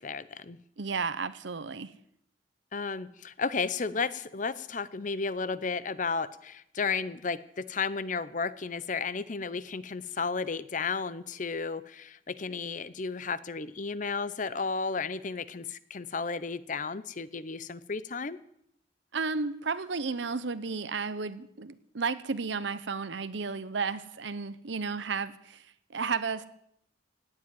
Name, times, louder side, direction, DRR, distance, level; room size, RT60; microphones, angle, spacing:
voice 1, 0.0-0.6 2.7-18.4, left 4 dB, 40° left, 16 dB, 0.7 m, -33 dB
voice 2, 0.8-1.9 19.1-25.6 25.9-26.5, right 4 dB, 70° right, 13 dB, 0.8 m, -33 dB
18.0 x 7.7 x 9.3 m, 0.74 s
head